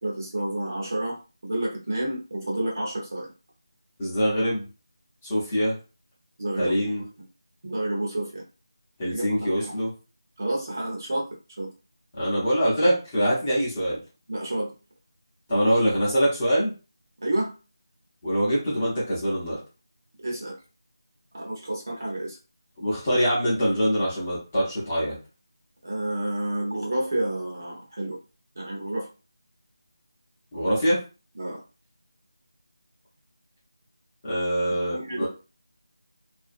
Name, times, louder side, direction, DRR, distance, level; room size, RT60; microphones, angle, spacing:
voice 1, 0.0-1.2 1.4-3.3 6.4-6.8 7.6-8.4 9.1-9.7 10.4-11.3 11.6-11.7 14.3-14.7 15.5-15.6 17.2-17.5 20.2-20.5 21.3-22.4 25.8-28.2 28.6-29.1 31.4-31.6 34.9-35.3, right 1 dB, 45° right, -2 dB, 0.9 m, -29 dB
voice 2, 4.0-4.7 5.2-5.8 6.6-7.0 9.0-9.9 12.2-14.0 15.5-16.7 18.2-19.6 22.8-25.2 30.5-31.0 34.2-35.3, equal, 15° left, -9 dB, 0.7 m, -24 dB
2.5 x 2.2 x 2.4 m, 0.33 s
figure-of-eight pair, 175°, 2 cm